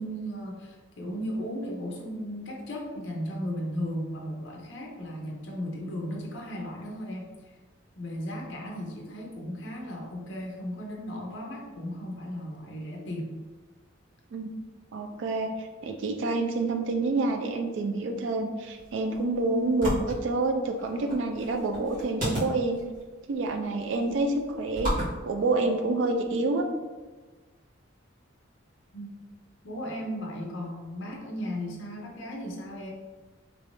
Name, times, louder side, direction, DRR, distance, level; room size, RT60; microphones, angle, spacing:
voice 1, 0.0-7.4 8.0-13.4 28.9-29.2 29.6-32.9, equal, 70° left, -1 dB, 0.6 m, -36 dB
voice 2, 14.9-22.8 23.3-26.7, right 2 dB, 70° right, 4 dB, 0.3 m, -28 dB
sound 1, 18.7-26.3, equal, 45° right, 1.4 m, -36 dB
3.5 x 3.1 x 2.5 m, 1.3 s
head